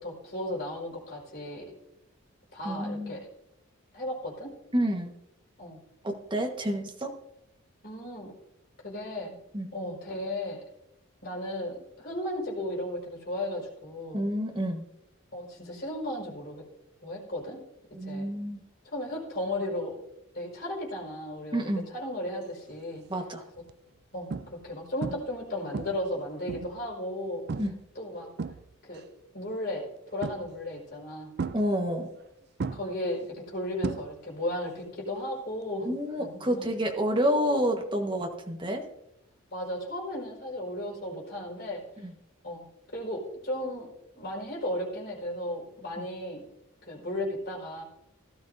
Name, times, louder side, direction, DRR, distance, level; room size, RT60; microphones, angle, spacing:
voice 1, 0.0-1.7 2.5-3.3 3.9-4.5 5.6-5.8 7.8-8.3 8.8-9.3 9.7-10.6 11.2-14.2 15.3-16.6 17.0-17.6 18.0-18.3 18.9-20.0 20.3-23.0 24.1-27.4 28.0-28.3 28.8-29.0 29.3-31.3 32.7-35.9 36.2-36.6 39.5-41.8 42.4-42.7 42.9-43.9 44.1-46.4 46.8-47.8, left 1 dB, 45° left, -3 dB, 4.9 m, -35 dB
voice 2, 2.6-3.2 4.7-5.1 6.0-7.1 9.5-9.7 14.1-14.8 17.9-18.6 21.5-21.8 23.1-23.4 27.6-27.7 31.5-32.1 35.8-38.8 42.0-42.1 46.0-46.1, equal, 25° right, 2 dB, 1.4 m, -29 dB
sound 1, 22.7-23.0 23.6-23.7 24.3-24.7 25.0-25.4 25.7-26.9 27.5-27.8 28.2-29.0 30.2-30.7 31.4-32.3 32.6-34.5 34.7-35.2 37.2-37.3, right 4 dB, 50° right, 0.4 m, -36 dB
16.5 x 12.5 x 2.7 m, 0.85 s
head